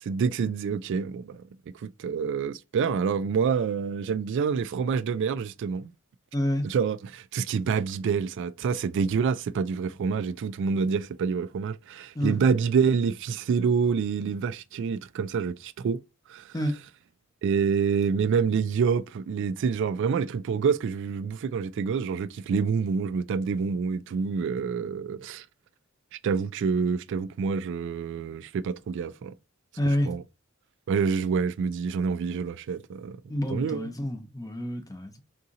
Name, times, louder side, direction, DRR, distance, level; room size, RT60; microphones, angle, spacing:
voice 1, 0.0-1.4 1.7-5.9 6.6-16.0 16.3-16.5 17.4-25.5 26.2-29.3 30.1-30.2 30.9-33.2 33.5-33.9, right 6 dB, 60° right, 0.3 m, -27 dB
voice 2, 6.3-6.7 12.1-12.4 16.5-16.8 29.8-30.1 33.3-35.2, equal, 15° left, 0.7 m, -28 dB
3.6 x 2.8 x 3.9 m
head